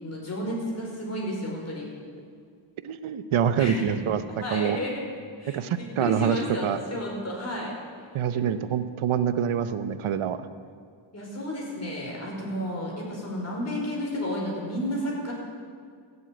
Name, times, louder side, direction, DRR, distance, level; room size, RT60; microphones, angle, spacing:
voice 1, 0.0-1.9 3.6-4.0 4.4-5.0 5.4-7.8 8.3-8.5 11.1-15.3, equal, 30° left, -2 dB, 5.2 m, -32 dB
voice 2, 2.8-4.2 4.5-4.8 5.5-6.8 8.1-10.4, right 8 dB, 75° right, 12 dB, 0.9 m, -26 dB
15.5 x 8.4 x 8.8 m, 2.2 s
cardioid pair, 85°, 50 cm